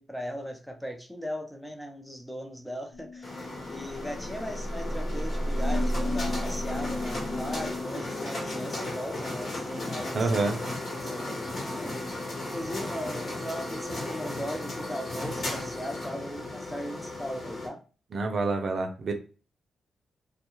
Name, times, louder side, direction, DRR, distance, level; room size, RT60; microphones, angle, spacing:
voice 1, 0.0-3.4 3.7-10.5 11.0-11.5 11.8-11.9 12.5-17.8, equal, 5° left, 4 dB, 0.5 m, -38 dB
sound 1, 2.9-7.9, equal, 85° left, 0.8 m, -32 dB
sound 2, 3.2-17.7, left 2 dB, 50° left, 1.3 m, -35 dB
voice 2, 10.1-10.6 18.1-19.1, right 3 dB, 55° right, 4 dB, 0.5 m, -27 dB
2.3 x 2.2 x 3.0 m, 0.36 s
cardioid pair, 80°, 0 cm